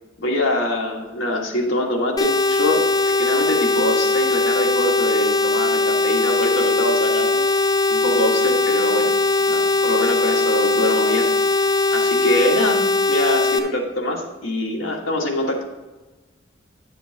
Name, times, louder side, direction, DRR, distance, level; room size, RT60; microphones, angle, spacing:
voice 1, 0.2-7.4 7.9-9.1 9.5-11.3 11.9-12.8 13.1-15.6, left 1 dB, 85° left, 0 dB, 1.6 m, -24 dB
sound 1, 2.2-13.6, left 3 dB, 20° left, 0.6 m, -19 dB
10.5 x 7.3 x 2.8 m, 1.2 s
head